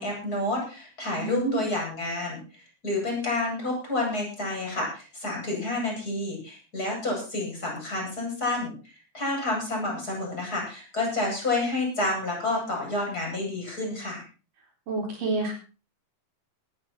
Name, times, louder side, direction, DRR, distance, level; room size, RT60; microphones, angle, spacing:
voice 1, 0.0-2.4 2.8-8.7 9.1-14.2, left 2 dB, 25° left, -1 dB, 8.0 m, -29 dB
voice 2, 1.2-1.7 14.9-15.5, right 3 dB, 85° right, 1 dB, 5.8 m, -28 dB
19.0 x 10.0 x 4.5 m, 0.35 s
omnidirectional pair, 3.7 m